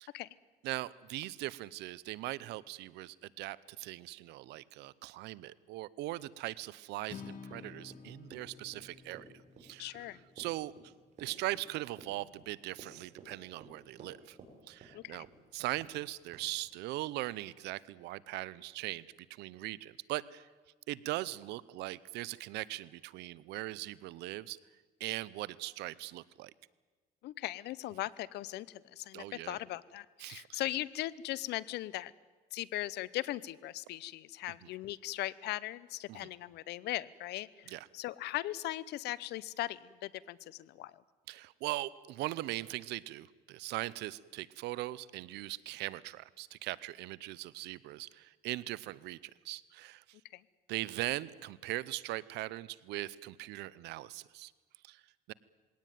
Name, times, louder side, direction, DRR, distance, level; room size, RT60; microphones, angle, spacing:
voice 1, 0.6-9.3 9.6-9.9 10.4-10.7 11.2-14.4 14.7-15.3 15.5-19.0 19.3-20.5 20.9-24.6 25.0-26.5 29.1-29.6 30.2-30.6 36.1-36.3 37.7-37.9 41.3-50.0 50.7-54.5 54.8-55.0 55.3-55.4, right 17 dB, 85° right, 20 dB, 0.7 m, -40 dB
Acoustic guitar, 7.1-11.3, left 6 dB, 55° left, 2.2 m, -52 dB
Run, 7.5-14.5 14.8-15.4 15.8-16.0 16.3-16.5, right 3 dB, 45° right, 5.7 m, -55 dB
voice 2, 9.8-10.2 14.9-15.3 27.2-32.1 32.5-40.9 50.3-50.4, left 16 dB, 80° left, 20 dB, 0.8 m, -39 dB
21.5 x 17.5 x 9.3 m, 1.3 s
cardioid pair, 110°, 17 cm